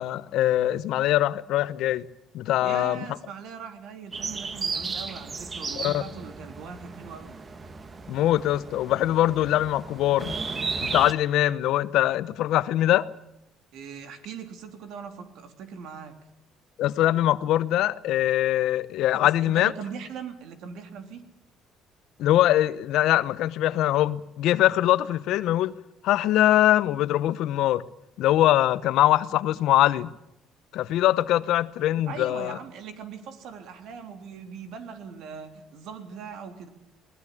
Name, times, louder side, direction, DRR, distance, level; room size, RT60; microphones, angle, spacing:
voice 1, 0.0-2.0 2.3-3.0 5.8-6.0 8.1-10.3 10.8-13.1 16.8-19.7 22.2-25.7 26.0-27.8 28.2-30.1 30.7-32.6, left 13 dB, 75° left, 1.0 m, -22 dB
voice 2, 2.6-7.4 13.7-16.2 19.1-21.2 32.1-36.7, right 6 dB, 70° right, 3.5 m, -40 dB
sound 1, 4.1-11.1, right 4 dB, 30° right, 1.6 m, -35 dB
21.5 x 19.5 x 8.6 m
cardioid pair, 110°, 0 cm